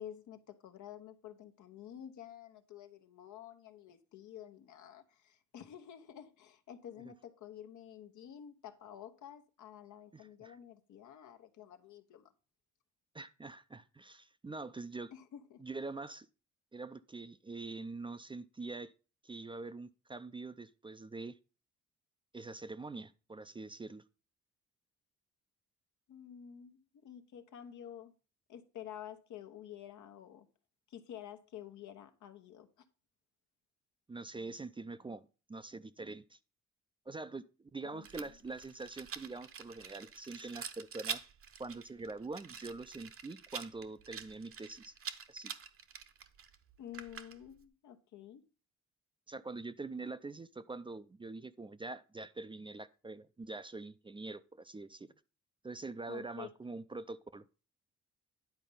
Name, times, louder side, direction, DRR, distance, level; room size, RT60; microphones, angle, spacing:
voice 1, 0.0-12.3 15.1-15.7 26.1-28.1 28.5-30.5 30.9-32.8 37.9-38.4 46.8-48.4 56.1-56.5, left 10 dB, 75° left, 1.1 m, -50 dB
voice 2, 10.1-10.6 13.1-15.1 15.6-16.3 16.7-18.9 19.2-21.4 22.3-24.0 34.1-36.4 37.1-41.2 41.6-44.9 45.3-45.5 49.3-55.1 55.6-57.4, right 3 dB, 15° right, 0.4 m, -44 dB
Rattle, 38.0-47.6, right 7 dB, 45° right, 0.9 m, -46 dB
10.5 x 4.2 x 5.4 m
cardioid pair, 90°, 30 cm